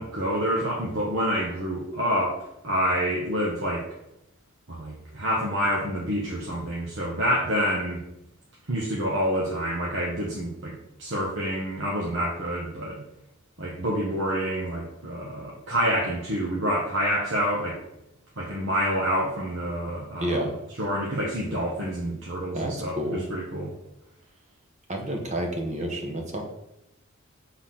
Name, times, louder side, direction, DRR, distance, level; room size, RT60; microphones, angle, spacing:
voice 1, 0.0-2.4 2.6-3.9 4.7-8.0 8.7-13.0 13.6-17.8 18.4-20.5 20.8-23.7, equal, 60° right, -5 dB, 1.4 m, -27 dB
voice 2, 20.2-20.5 22.5-23.3 24.9-26.4, right 1 dB, 35° right, 1 dB, 1.4 m, -29 dB
5.9 x 4.0 x 6.0 m, 0.82 s
head